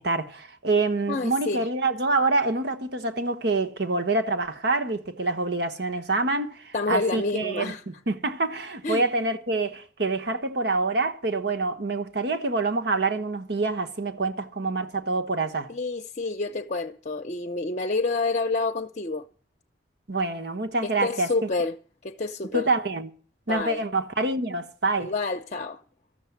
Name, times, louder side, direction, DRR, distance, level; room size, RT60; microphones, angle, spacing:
voice 1, 0.0-15.7 20.1-21.5 22.5-23.1 23.5-25.1, right 3 dB, 65° right, 1.2 m, -26 dB
voice 2, 1.1-1.7 6.7-7.8 8.8-9.1 15.7-19.2 20.8-21.7 22.0-22.7 23.5-23.8 25.0-25.8, left 3 dB, 45° left, 0.7 m, -28 dB
14.0 x 6.9 x 9.5 m
head